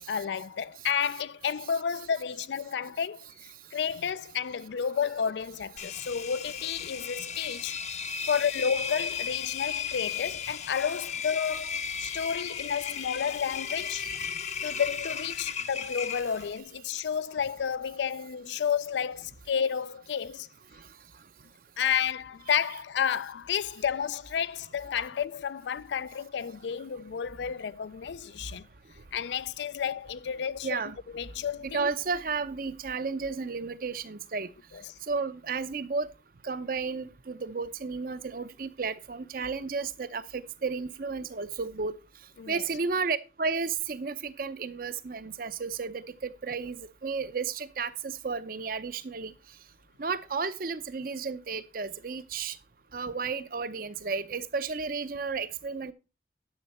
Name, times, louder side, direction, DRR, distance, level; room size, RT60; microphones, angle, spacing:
voice 1, 0.0-3.3 3.7-7.8 8.3-14.1 14.6-20.5 21.8-28.7 29.1-30.8 31.1-31.9 42.4-42.6, left 7 dB, 70° left, 0.4 m, -31 dB
Engine, 5.8-16.6, left 7 dB, 40° left, 0.7 m, -35 dB
voice 2, 30.6-31.0 31.6-34.5 35.1-36.1 36.4-41.9 42.5-49.3 50.0-52.6 52.9-55.9, right 4 dB, 50° right, 0.6 m, -33 dB
10.5 x 6.8 x 4.2 m
head